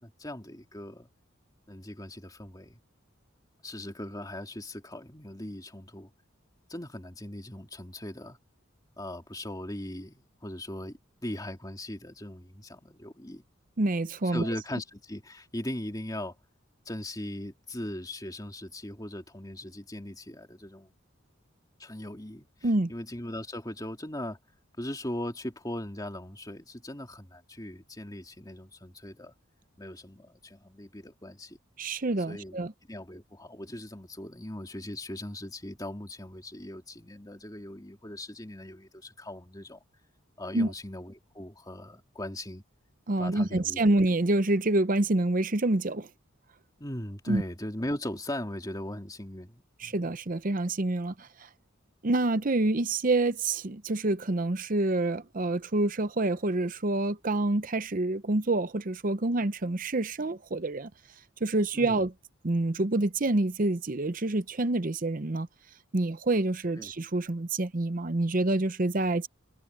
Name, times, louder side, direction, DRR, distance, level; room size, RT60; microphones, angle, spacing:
voice 1, 0.0-1.1 1.7-2.8 3.6-6.1 6.7-8.4 9.0-13.4 14.2-16.3 16.8-20.9 21.8-24.4 24.8-29.3 29.8-31.6 32.3-32.6 32.9-39.8 40.4-42.6 43.2-43.8 46.8-50.0 61.7-62.0 66.8-66.9, left 1 dB, 20° left, 2.9 m, -39 dB
voice 2, 13.8-14.5 22.6-22.9 31.8-32.7 40.5-40.7 43.1-46.1 47.3-47.4 49.8-51.5 52.0-60.9 61.4-62.1 62.4-65.5 65.9-69.3, right 2 dB, 40° right, 0.7 m, -27 dB
head